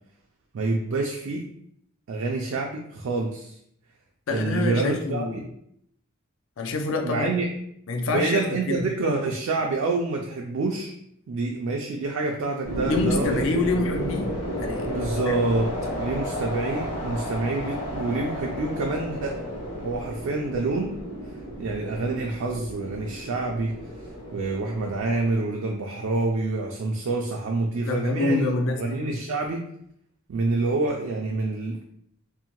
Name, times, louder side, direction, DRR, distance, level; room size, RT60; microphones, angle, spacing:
voice 1, 0.5-1.5 2.1-3.5 4.3-5.5 7.0-7.5 8.1-10.9 11.3-13.5 14.9-19.4 19.8-21.0 21.6-23.8 24.3-29.7 30.3-31.8, right 3 dB, 70° right, 1 dB, 0.3 m, -27 dB
voice 2, 4.3-5.4 6.6-7.3 7.9-8.8 12.9-15.0 15.3-15.4 15.8-15.9 27.9-29.2, left 3 dB, 65° left, 4 dB, 0.4 m, -27 dB
sound 1, 12.6-25.4, equal, 45° left, 1.0 m, -32 dB
2.6 x 2.1 x 2.9 m, 0.72 s
head